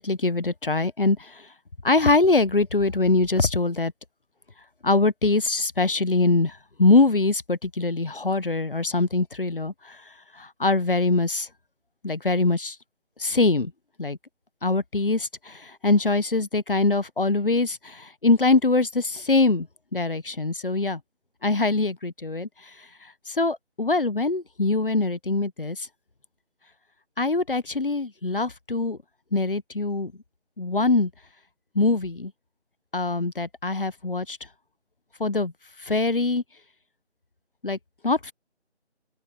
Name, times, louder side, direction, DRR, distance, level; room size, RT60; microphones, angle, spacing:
voice 1, 0.0-1.5 1.8-3.9 4.8-10.0 10.3-11.5 12.0-12.8 13.2-13.7 14.0-14.2 14.6-21.0 21.4-22.9 23.3-25.9 27.2-29.0 29.3-30.1 30.6-31.1 31.7-32.3 32.9-34.4 35.2-35.5 35.8-36.4 37.6-37.8 38.0-38.3, left 3 dB, 50° left, 1.0 m, -23 dB
open air
figure-of-eight pair, 180°, 34 cm